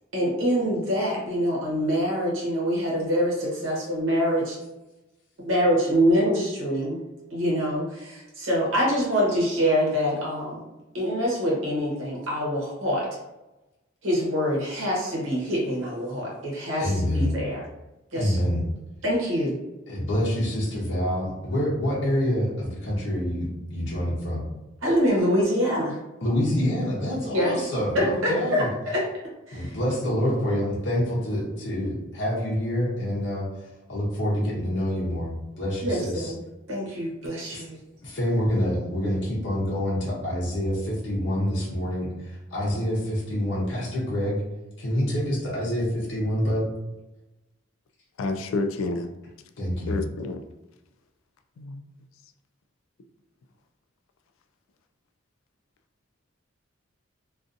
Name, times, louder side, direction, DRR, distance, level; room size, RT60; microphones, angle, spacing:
voice 1, 0.1-4.6 5.4-7.0 7.3-10.6 10.9-13.1 14.0-17.6 18.1-18.4 19.0-19.6 24.8-26.0 27.3-27.6 27.9-29.1 29.5-29.8 35.8-36.4 36.7-37.8, equal, 85° right, -4 dB, 0.9 m, -25 dB
voice 2, 16.8-17.4 18.1-18.6 19.9-24.5 26.2-28.7 29.5-36.3 37.5-37.6 38.0-44.4 44.8-46.7 49.6-50.0, equal, 60° left, -5 dB, 0.7 m, -27 dB
voice 3, 48.2-49.1 49.9-50.4 51.6-51.8, left 3 dB, 85° left, 8 dB, 0.3 m, -29 dB
2.5 x 2.4 x 2.5 m, 1.0 s
head